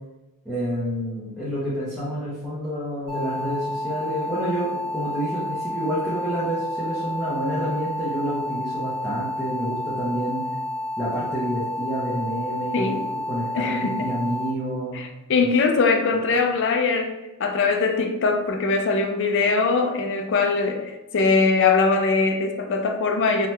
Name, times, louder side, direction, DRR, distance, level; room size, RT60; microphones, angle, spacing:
voice 1, 0.4-10.5 11.0-13.0 13.3-15.0, right 1 dB, ahead, -11 dB, 0.7 m, -28 dB
sound 1, 3.1-14.5, left 1 dB, 60° right, 1.1 m, -30 dB
voice 2, 13.5-14.1 14.9-17.1 17.4-23.5, left 4 dB, 55° left, 4 dB, 0.4 m, -21 dB
2.7 x 2.3 x 3.1 m, 1.0 s
head